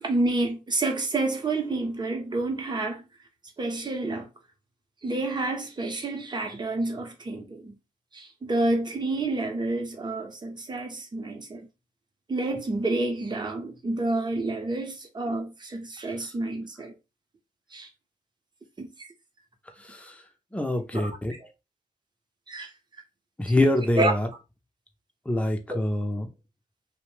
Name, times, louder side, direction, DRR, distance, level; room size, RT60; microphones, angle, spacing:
voice 1, 0.0-3.0 3.6-4.3 5.0-7.8 8.1-11.7 12.3-16.9 17.7-17.9 18.8-19.1 20.9-21.1 22.5-22.7 24.0-24.1 25.7-25.8, right 2 dB, 30° right, 0.8 m, -29 dB
voice 2, 19.8-20.2 20.5-21.3 23.4-24.3 25.3-26.3, left 1 dB, 10° left, 0.6 m, -25 dB
2.6 x 2.1 x 3.1 m
cardioid pair, 75°, 14 cm